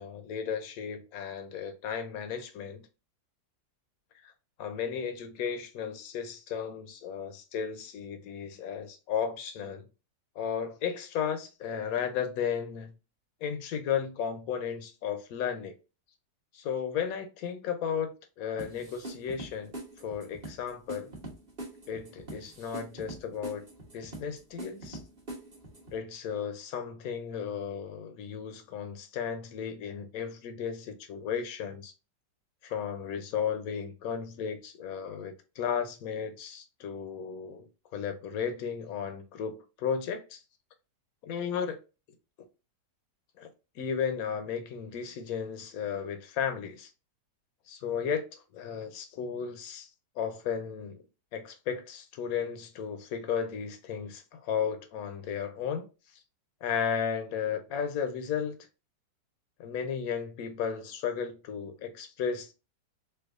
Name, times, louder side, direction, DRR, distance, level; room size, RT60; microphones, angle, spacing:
voice 1, 0.0-2.8 4.2-4.3 4.6-9.8 10.4-12.9 13.4-15.7 16.5-21.1 21.9-23.7 23.9-25.0 25.9-31.9 32.6-37.7 37.9-40.4 41.2-41.8 43.4-43.5 43.8-46.9 47.7-49.9 50.2-51.0 51.3-55.9 56.6-58.6 59.6-62.5, left 7 dB, 70° left, 0.9 m, -34 dB
sound 1, 18.6-26.0, right 1 dB, 30° right, 1.0 m, -44 dB
4.4 x 2.4 x 2.3 m
omnidirectional pair, 1.9 m